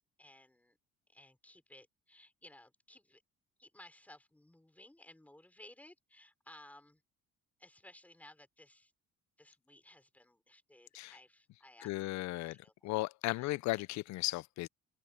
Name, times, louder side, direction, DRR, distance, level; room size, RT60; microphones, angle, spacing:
voice 1, 0.2-0.8 1.1-3.2 3.6-7.0 7.6-8.9 9.4-12.9 13.4-13.6, left 1 dB, 5° left, 5.6 m, -59 dB
voice 2, 11.8-12.6 12.8-14.7, left 19 dB, 70° left, 0.5 m, -35 dB
cardioid pair, 175°, 30 cm